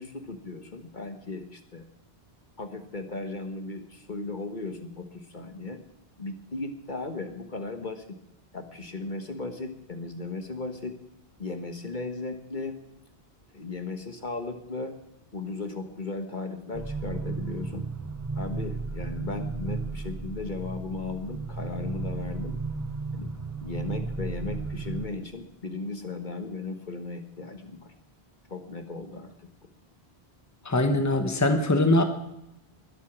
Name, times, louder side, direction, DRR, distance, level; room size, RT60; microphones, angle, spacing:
voice 1, 0.0-1.9 2.6-5.8 6.2-8.2 8.5-11.0 11.4-12.8 13.5-15.0 15.3-17.8 18.3-22.5 23.1-23.3 23.6-27.9 28.5-29.5, left 3 dB, 50° left, 7 dB, 1.5 m, -36 dB
sound 1, 16.7-25.1, right 4 dB, 20° right, 0.9 m, -34 dB
voice 2, 30.6-32.0, left 2 dB, 15° left, 6 dB, 1.2 m, -22 dB
20.5 x 8.3 x 6.1 m, 0.88 s
omnidirectional pair, 1.0 m